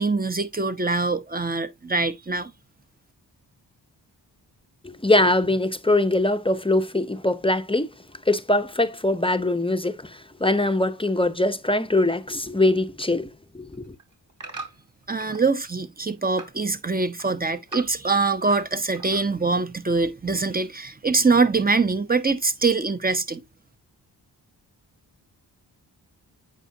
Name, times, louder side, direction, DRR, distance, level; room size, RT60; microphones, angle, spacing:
voice 1, 0.0-2.5 15.1-23.4, right 4 dB, 20° right, 0.9 m, -23 dB
voice 2, 4.8-7.9 8.3-13.9, left 2 dB, 10° left, 0.7 m, -22 dB
sound 1, 13.6-15.5 15.8-16.6 16.9-18.7 18.9-19.5 20.0-20.1, right 3 dB, 45° right, 3.0 m, -41 dB
8.4 x 5.1 x 2.8 m
cardioid pair, 50°, 43 cm